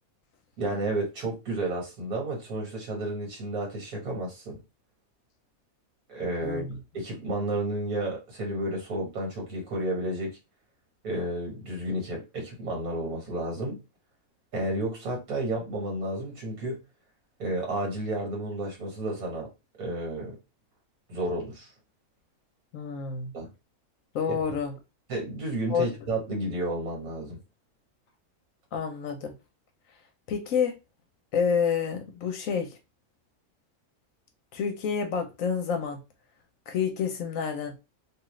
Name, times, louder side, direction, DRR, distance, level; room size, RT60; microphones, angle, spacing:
voice 1, 0.6-4.6 6.1-6.6 6.9-10.4 11.0-13.8 14.5-16.8 17.4-19.5 19.8-20.4 21.1-21.7 23.3-23.5 24.3-24.4 25.1-27.4, right 1 dB, 75° right, 1.7 m, -31 dB
voice 2, 6.4-6.8 22.7-23.3 24.1-24.7 25.7-25.9 28.7-29.3 30.3-30.7 31.3-32.8 34.5-36.0 36.7-37.7, left 6 dB, 70° left, 1.0 m, -28 dB
3.0 x 2.3 x 3.1 m
omnidirectional pair, 1.6 m